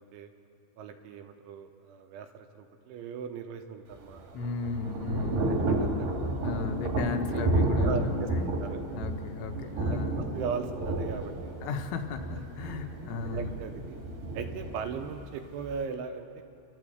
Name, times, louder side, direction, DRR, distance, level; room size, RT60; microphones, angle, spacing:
voice 1, 0.8-4.4 5.1-6.4 7.8-8.8 9.6-10.0 10.3-11.6 13.2-14.0 14.3-16.4, right 6 dB, 75° right, 6 dB, 3.3 m, -38 dB
Thunder / Rain, 3.9-15.8, right 2 dB, 55° right, 3.5 m, -31 dB
voice 2, 4.3-5.5 6.4-8.5 8.9-10.2 11.6-13.5, left 5 dB, 80° left, 5 dB, 3.3 m, -35 dB
29.5 x 12.5 x 7.9 m, 2.6 s
omnidirectional pair, 5.7 m